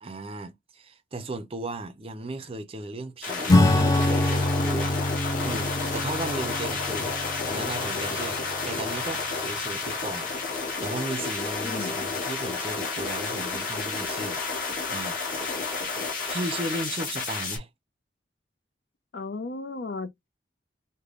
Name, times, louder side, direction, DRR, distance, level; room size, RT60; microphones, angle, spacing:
voice 1, 0.0-5.0 5.4-7.2 7.5-8.4 8.7-14.4 14.9-15.9 16.3-17.7, right 2 dB, 30° right, 0.5 m, -36 dB
sound 1, 3.2-17.6, left 4 dB, 50° left, 1.5 m, -31 dB
Acoustic guitar / Strum, 3.5-9.4, left 1 dB, 20° left, 0.4 m, -25 dB
voice 2, 11.6-12.0 19.1-20.3, left 3 dB, 65° left, 0.6 m, -35 dB
3.4 x 2.1 x 3.6 m
head